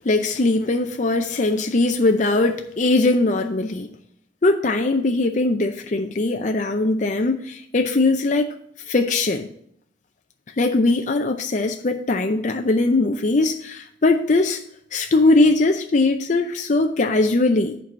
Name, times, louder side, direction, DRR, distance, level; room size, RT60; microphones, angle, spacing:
voice 1, 0.0-3.9 4.4-8.5 8.9-9.5 10.6-14.6 14.9-17.8, left 2 dB, 40° left, 5 dB, 0.5 m, -20 dB
8.5 x 4.7 x 7.3 m, 0.68 s
head